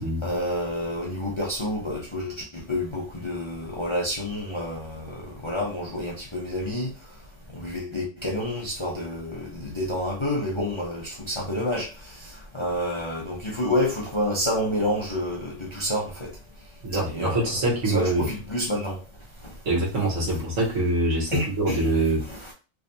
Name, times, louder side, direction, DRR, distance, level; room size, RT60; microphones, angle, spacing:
voice 1, 0.2-6.9 7.5-11.9 12.2-16.3 17.1-17.5 17.8-19.0 21.3-21.9 22.3-22.5, left 1 dB, 30° left, 0.6 m, -29 dB
voice 2, 16.8-18.3 19.6-22.2, right 1 dB, 70° right, 1.7 m, -24 dB
3.5 x 3.2 x 2.7 m
omnidirectional pair, 1.4 m